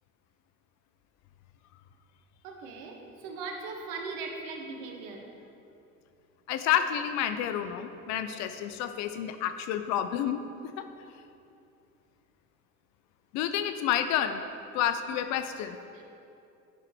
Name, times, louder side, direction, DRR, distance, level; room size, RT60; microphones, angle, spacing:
voice 1, 2.4-5.3 15.9-16.0, right 4 dB, 60° right, 2 dB, 1.1 m, -39 dB
voice 2, 6.5-10.4 10.8-10.9 13.3-14.4 14.7-15.8, left 10 dB, 45° left, 9 dB, 0.4 m, -29 dB
9.8 x 5.6 x 3.2 m, 2.7 s
figure-of-eight pair, 60°, 42 cm